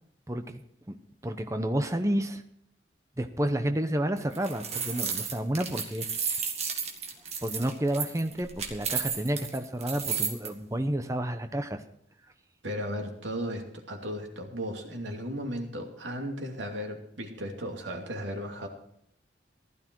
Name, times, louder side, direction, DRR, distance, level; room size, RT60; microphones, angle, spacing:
voice 1, 0.3-0.6 0.9-1.0 1.2-2.4 3.2-6.1 7.4-11.8, right 1 dB, 15° right, 7 dB, 0.8 m, -30 dB
sound 1, 4.2-10.5, right 6 dB, 35° right, 1.8 m, -33 dB
voice 2, 12.6-18.7, equal, 80° right, 2 dB, 2.7 m, -35 dB
15.5 x 12.5 x 4.6 m, 0.71 s
head